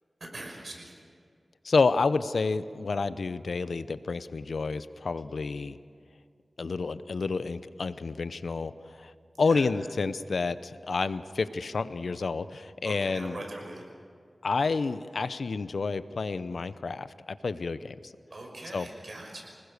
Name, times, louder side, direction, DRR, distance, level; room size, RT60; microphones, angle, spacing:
voice 1, 0.2-0.9 9.3-9.7 12.8-13.9 18.3-19.6, right 2 dB, 55° right, 1 dB, 5.7 m, -42 dB
voice 2, 1.6-5.8 6.6-9.1 9.4-13.4 14.4-18.1 18.7-18.9, left 4 dB, 85° left, 13 dB, 0.7 m, -29 dB
26.5 x 20.0 x 6.7 m, 2.2 s
wide cardioid pair, 75°, 0 cm